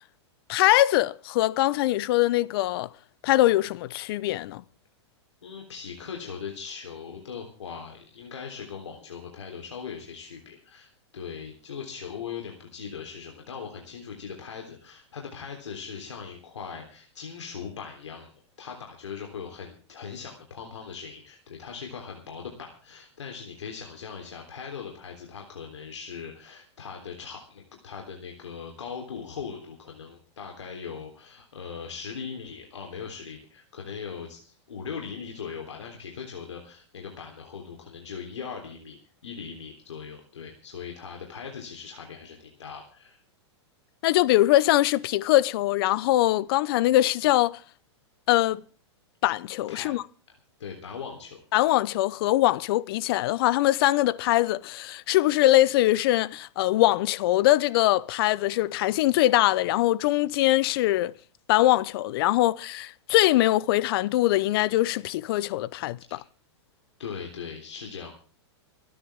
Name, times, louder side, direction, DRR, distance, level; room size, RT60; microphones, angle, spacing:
voice 1, 0.5-2.9 3.2-4.6 44.0-47.6 48.3-48.6 49.2-50.0 51.5-61.1 61.5-66.2, left 16 dB, 55° left, 0.8 m, -22 dB
voice 2, 5.4-18.3 18.6-43.2 49.7-49.9 50.3-51.4 66.1-66.2 67.0-68.1, left 6 dB, 85° left, 3.6 m, -40 dB
29.0 x 9.9 x 3.6 m
hypercardioid pair, 120°, 15 cm